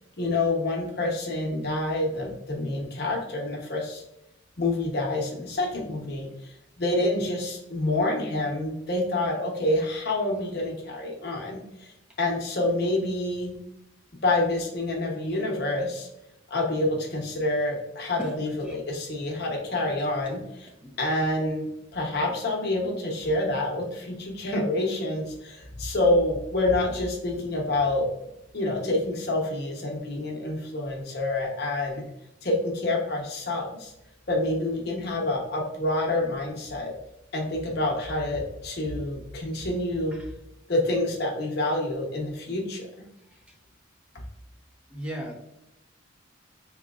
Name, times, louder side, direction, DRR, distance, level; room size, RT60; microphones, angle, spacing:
voice 1, 0.2-4.0 4.6-6.3 6.8-13.6 14.2-16.1 16.5-20.7 21.0-21.7 21.9-28.1 28.5-32.0 32.4-33.9 34.3-36.9 37.3-40.1 40.7-42.9, left 2 dB, 50° left, -1 dB, 0.9 m, -27 dB
voice 2, 18.2-18.8 20.8-20.9 44.9-45.5, equal, 5° right, -1 dB, 0.6 m, -37 dB
3.7 x 2.8 x 2.4 m, 0.86 s
head